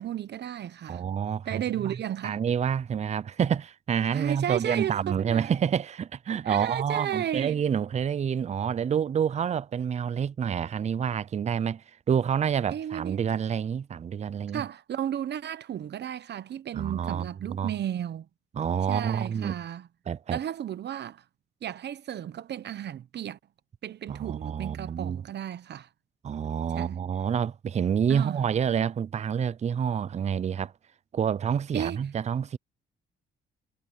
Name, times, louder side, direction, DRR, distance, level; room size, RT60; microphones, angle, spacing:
voice 1, 0.0-1.0 1.5-2.4 4.1-5.5 6.4-7.6 12.7-13.2 14.5-18.3 18.9-19.9 20.3-21.2 21.6-23.4 23.8-25.9 26.7-27.0 28.1-28.4 31.7-32.0, right 10 dB, 60° right, 0.9 m, -34 dB
voice 2, 0.9-2.0 2.2-14.6 16.7-17.7 18.5-19.5 20.1-20.4 24.1-25.2 26.2-30.7 31.1-32.6, right 8 dB, 35° right, 0.5 m, -28 dB
cardioid pair, 90°, 20 cm